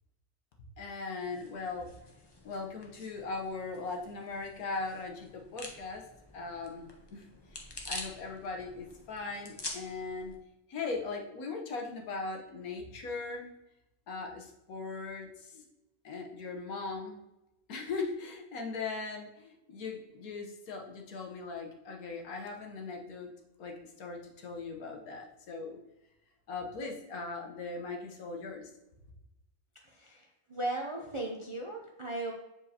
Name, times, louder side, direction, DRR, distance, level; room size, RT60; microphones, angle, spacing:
voice 1, 0.8-1.9 2.4-6.0 6.3-6.8 7.1-7.3 7.9-10.3 10.7-13.5 14.1-15.7 16.0-17.2 17.7-23.3 23.6-25.8 26.5-28.7, left 4 dB, 85° left, 1 dB, 1.4 m, -39 dB
sound 1, 1.2-10.4, left 2 dB, 25° left, 0.6 m, -47 dB
voice 2, 29.8-32.3, right 2 dB, 45° right, 0 dB, 0.4 m, -37 dB
7.2 x 4.5 x 2.8 m, 0.93 s
omnidirectional pair, 1.5 m